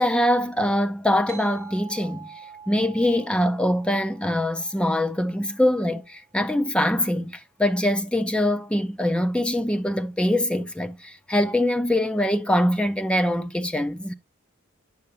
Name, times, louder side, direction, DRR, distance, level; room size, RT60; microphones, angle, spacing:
voice 1, 0.0-2.3 2.7-14.1, left 1 dB, 5° left, 0.4 m, -23 dB
sound 1, 1.3-6.3, right 6 dB, 10° right, 1.5 m, -46 dB
7.7 x 5.7 x 2.8 m
head